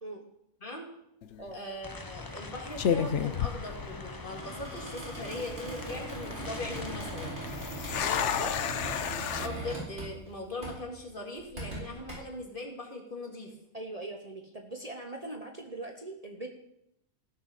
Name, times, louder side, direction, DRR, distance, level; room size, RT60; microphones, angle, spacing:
sound 1, 1.2-1.5 2.3-2.4 2.8-4.3 4.6-4.7 5.3-5.7 7.5-9.5, left 8 dB, 70° left, 1.0 m, -31 dB
voice 1, 1.5-7.4 9.4-13.5, left 1 dB, 40° left, 0 dB, 2.6 m, -40 dB
sound 2, 1.8-9.1, left 3 dB, 20° left, 0.6 m, -43 dB
Squeak, 4.2-10.3 10.6-10.9 11.4-12.1, right 1 dB, 60° right, 5.4 m, -40 dB
voice 2, 8.0-8.8 13.7-16.5, right 2 dB, 30° right, 2 dB, 1.1 m, -41 dB
15.5 x 6.8 x 6.7 m, 0.80 s
omnidirectional pair, 1.3 m